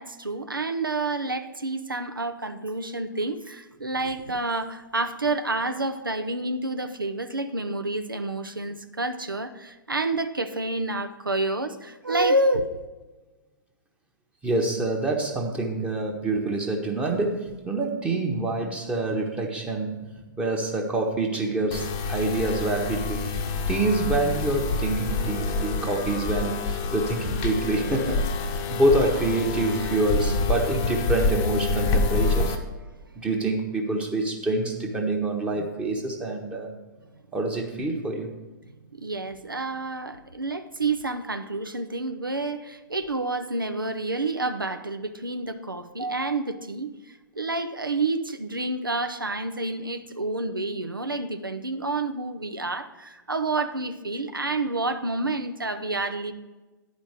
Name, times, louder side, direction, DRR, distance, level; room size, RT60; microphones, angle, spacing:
voice 1, 0.0-12.7 28.7-28.8 33.0-33.3 38.6-56.3, right 2 dB, 90° right, 8 dB, 0.6 m, -29 dB
voice 2, 14.4-20.0 20.4-23.3 23.7-28.3 28.7-32.6 33.2-36.7 37.3-38.3, right 2 dB, 10° right, 1 dB, 1.0 m, -26 dB
sound 1, 21.7-32.6, left 3 dB, 30° left, 0.8 m, -27 dB
10.0 x 5.2 x 6.4 m, 1.2 s
figure-of-eight pair, 115°, 11 cm